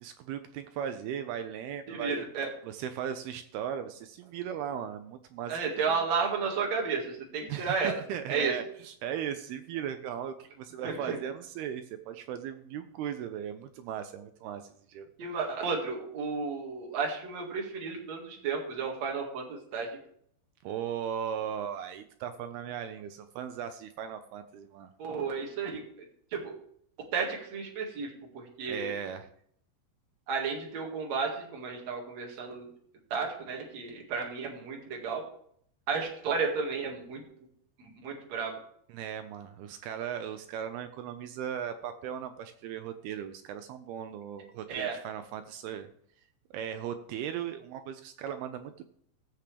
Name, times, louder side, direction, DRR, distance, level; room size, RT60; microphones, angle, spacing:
voice 1, 0.0-2.3 2.6-6.0 7.5-15.1 20.6-24.9 28.7-29.3 38.9-45.9 46.5-48.8, right 9 dB, 80° right, 8 dB, 2.3 m, -37 dB
voice 2, 1.9-2.5 5.5-8.0 8.3-8.5 10.8-11.2 15.2-19.9 25.0-25.8 26.3-26.5 27.1-28.9 30.3-32.7 33.1-35.2 35.9-37.2 37.8-38.6 44.7-45.0, right 5 dB, 45° right, 0 dB, 2.7 m, -32 dB
16.5 x 7.3 x 3.4 m, 0.64 s
omnidirectional pair, 5.1 m